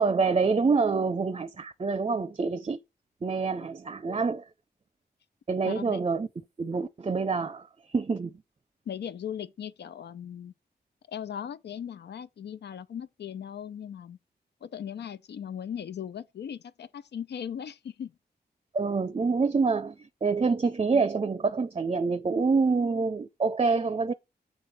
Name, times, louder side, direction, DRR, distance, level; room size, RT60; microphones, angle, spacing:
voice 1, 0.0-2.8 3.2-4.4 5.5-6.3 6.6-8.3 18.7-19.9 20.2-24.1, right 4 dB, 35° right, 0.5 m, -26 dB
voice 2, 5.6-6.0 8.9-10.5 11.1-14.2 14.6-18.1, left 8 dB, 80° left, 0.6 m, -38 dB
6.8 x 3.2 x 5.5 m
cardioid pair, 65°, 17 cm